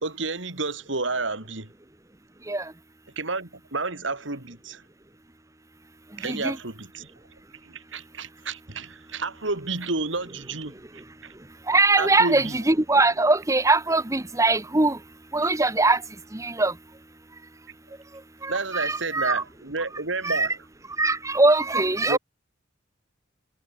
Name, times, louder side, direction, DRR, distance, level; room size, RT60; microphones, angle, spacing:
voice 1, 0.0-1.7 3.2-4.8 6.2-7.1 7.6-11.3 12.0-12.6 18.5-20.5 22.1-22.2, right 3 dB, 75° right, 3.0 m, -31 dB
voice 2, 6.2-6.6 11.7-15.0 15.3-16.0 16.3-16.8 18.4-19.4 20.2-20.5 21.0-22.2, right 2 dB, 15° right, 1.0 m, -22 dB
head